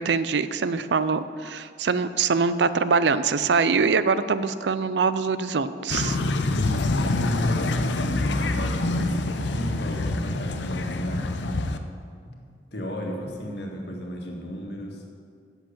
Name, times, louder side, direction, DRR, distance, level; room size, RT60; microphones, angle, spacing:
voice 1, 0.0-6.2, right 5 dB, 80° right, 13 dB, 0.5 m, -23 dB
sound 1, 5.9-11.8, left 2 dB, 85° left, 0.7 m, -26 dB
voice 2, 6.5-11.6 12.2-12.3 12.7-15.0, equal, 70° left, 0 dB, 1.7 m, -33 dB
8.0 x 7.6 x 8.6 m, 2.2 s
head